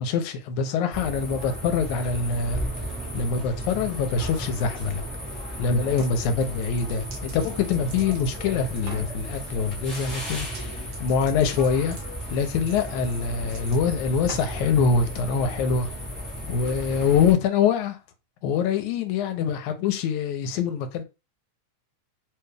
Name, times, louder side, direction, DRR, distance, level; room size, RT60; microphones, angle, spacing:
voice 1, 0.0-2.6 3.1-5.0 5.6-12.0 12.3-15.9 16.4-18.0 18.4-21.0, left 6 dB, 85° left, 2.1 m, -24 dB
sound 1, 0.9-17.3, equal, ahead, 0.7 m, -34 dB
sound 2, 5.8-6.1 6.5-8.4 8.8-9.1 10.4-10.7 10.9-14.7, right 4 dB, 60° right, 1.5 m, -45 dB
4.6 x 2.3 x 3.3 m
omnidirectional pair, 3.4 m